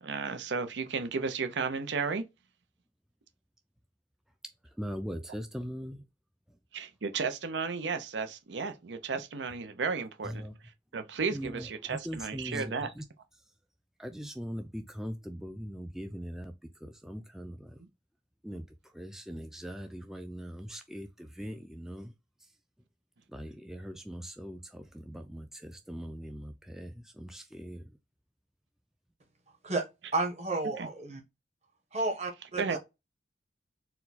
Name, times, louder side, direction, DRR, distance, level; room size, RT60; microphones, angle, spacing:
voice 1, 0.0-2.2 6.7-10.5 10.9-12.9 30.8-30.9 32.6-32.8, right 5 dB, 90° right, 0.6 m, -33 dB
voice 2, 4.6-6.0 9.1-9.2 10.2-10.5 11.3-13.0 14.0-17.8 18.4-22.1 23.3-27.9, equal, 5° right, 0.3 m, -41 dB
voice 3, 30.1-31.2 31.9-32.8, right 2 dB, 40° right, 1.1 m, -31 dB
4.3 x 2.2 x 4.0 m
head